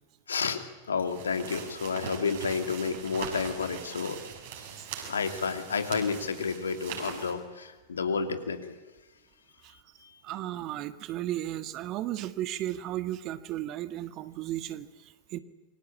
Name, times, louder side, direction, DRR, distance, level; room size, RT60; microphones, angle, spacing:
voice 1, 0.3-4.2 5.0-8.8 9.7-10.2, left 5 dB, 70° left, 7 dB, 2.8 m, -31 dB
sound 1, 1.1-7.3, right 7 dB, 55° right, 7.0 m, -41 dB
voice 2, 10.2-15.4, right 13 dB, 40° right, 12 dB, 1.6 m, -35 dB
28.0 x 24.0 x 8.7 m, 1.2 s
figure-of-eight pair, 90°, 0 cm